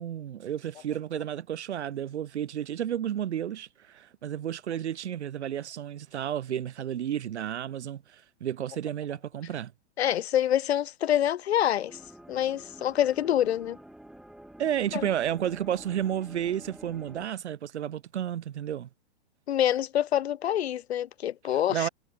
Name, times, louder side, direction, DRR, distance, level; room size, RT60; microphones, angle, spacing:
voice 1, 0.0-9.7 14.6-18.9 21.7-21.9, right 10 dB, 75° right, 2.4 m, -32 dB
voice 2, 10.0-12.0 12.3-13.8 14.9-15.1 19.5-21.9, left 11 dB, 65° left, 1.8 m, -26 dB
sound 1, 11.9-17.3, right 1 dB, ahead, 2.0 m, -49 dB
hypercardioid pair, 175°, 34 cm